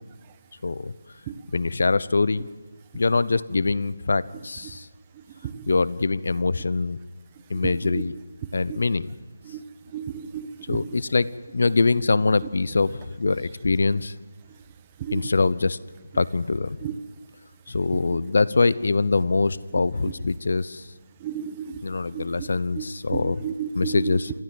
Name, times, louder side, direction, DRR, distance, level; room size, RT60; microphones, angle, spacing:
voice 1, 0.6-0.9 1.5-2.5 2.9-4.9 5.7-7.0 7.5-8.1 8.5-9.1 10.7-14.1 15.1-15.8 16.1-16.8 17.7-20.9 21.8-23.4 23.7-24.3, left 3 dB, 65° left, 18 dB, 0.9 m, -23 dB
voice 2, 9.9-10.8 15.0-15.2 16.8-16.9 21.2-21.7 22.1-22.5 22.8-22.9 23.1-24.2, right 8 dB, 20° right, 11 dB, 1.2 m, -32 dB
27.0 x 15.5 x 7.8 m, 1.4 s
figure-of-eight pair, 160°, 0 cm